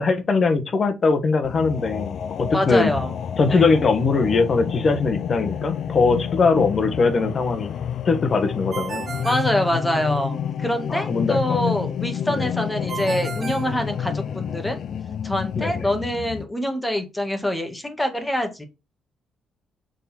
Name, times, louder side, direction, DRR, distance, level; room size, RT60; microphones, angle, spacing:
voice 1, 0.0-2.9 3.4-7.7 8.0-9.1 10.9-11.6 12.3-12.5 15.5-15.9, left 4 dB, 45° left, 1.4 m, -21 dB
sound 1, 1.4-16.4, left 8 dB, 65° left, 0.6 m, -29 dB
voice 2, 2.5-3.1 3.5-3.8 9.2-14.8 15.2-18.6, equal, 10° left, 1.8 m, -25 dB
Ringtone, 8.7-10.3 12.9-14.5, right 6 dB, 40° right, 1.1 m, -35 dB
6.5 x 4.1 x 4.3 m
cardioid pair, 90°, 0 cm